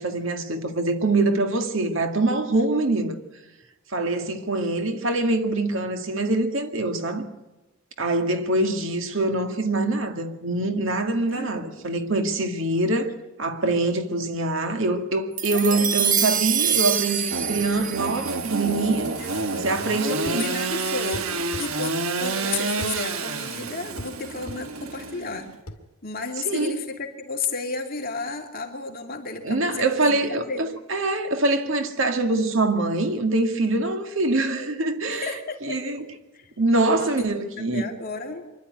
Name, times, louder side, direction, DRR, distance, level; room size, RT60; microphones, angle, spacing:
voice 1, 0.0-3.2 3.9-7.3 8.0-19.1 19.5-20.4 26.5-26.8 29.4-36.0 36.6-37.8, right 2 dB, 65° right, 2.1 m, -24 dB
voice 2, 11.3-11.9 15.5-15.9 19.2-19.7 20.0-25.5 26.0-30.7 35.1-35.9 36.3-36.5 37.0-37.3 37.6-38.4, left 4 dB, 45° left, 2.7 m, -33 dB
sound 1, 15.4-19.9, right 8 dB, 40° right, 1.3 m, -26 dB
Engine / Sawing, 17.3-25.5, right 3 dB, 85° right, 1.4 m, -29 dB
sound 2, 20.2-20.5 21.1-21.7 22.8-23.0 24.0-24.2 24.5-24.6 25.7-25.8, left 1 dB, 70° left, 2.3 m, -37 dB
24.5 x 11.5 x 9.6 m
head